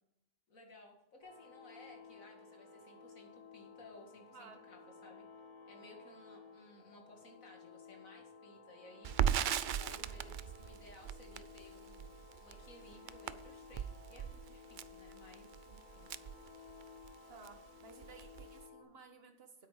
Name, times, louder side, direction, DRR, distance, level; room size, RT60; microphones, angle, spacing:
voice 1, 0.5-5.2 5.7-9.1 9.7-16.1, left 2 dB, 80° left, 1 dB, 2.6 m, -58 dB
sound 1, 1.2-18.8, left 5 dB, 40° left, 3.9 m, -56 dB
Crackle, 9.0-17.1 17.4-17.6 17.9-18.6, right 9 dB, 80° right, 0.4 m, -38 dB
voice 2, 17.8-19.7, right 4 dB, 50° right, 5 dB, 1.6 m, -56 dB
9.4 x 8.5 x 5.1 m, 0.81 s
omnidirectional pair, 1.4 m